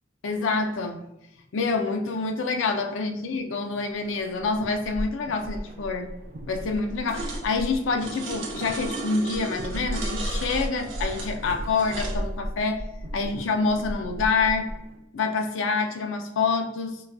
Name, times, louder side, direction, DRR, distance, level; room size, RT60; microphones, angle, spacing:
voice 1, 0.2-1.0 1.5-6.1 6.5-12.8 13.1-14.7 15.1-17.0, left 4 dB, 80° left, 6 dB, 0.4 m, -27 dB
sound 1, 4.2-15.0, equal, 45° right, 0.4 m, -35 dB
sound 2, 7.1-7.3 8.2-8.4 9.9-10.0 11.5-11.6, equal, 15° right, 0.9 m, -46 dB
sound 3, 7.1-7.5 8.0-12.2, right 3 dB, 75° right, 0.7 m, -36 dB
3.9 x 2.3 x 2.3 m, 0.89 s
head